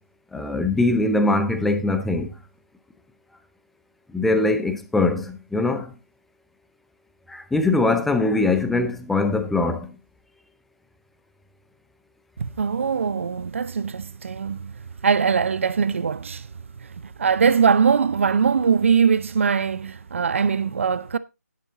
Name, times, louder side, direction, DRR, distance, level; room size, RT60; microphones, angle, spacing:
voice 1, 0.3-2.3 4.1-5.9 7.3-9.9, left 2 dB, ahead, 0.6 m, -22 dB
voice 2, 12.4-16.5 16.8-21.2, right 6 dB, 50° right, 0.6 m, -22 dB
11.0 x 8.9 x 3.8 m
figure-of-eight pair, 160°, 9 cm